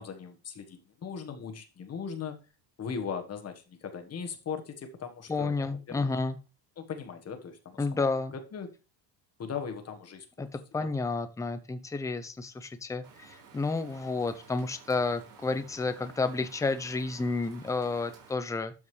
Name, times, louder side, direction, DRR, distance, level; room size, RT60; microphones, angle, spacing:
voice 1, 0.0-2.4 2.8-6.1 6.8-8.0 8.3-8.7 9.4-10.5 10.8-10.9, left 6 dB, 30° left, 7 dB, 1.4 m, -39 dB
voice 2, 5.3-6.4 7.8-8.3 10.4-10.5 10.7-18.7, left 3 dB, 5° left, 10 dB, 0.6 m, -31 dB
Rain, 13.0-18.3, right 5 dB, 45° right, 4.2 m, -53 dB
12.5 x 5.2 x 3.2 m, 0.32 s
cardioid pair, 130°, 47 cm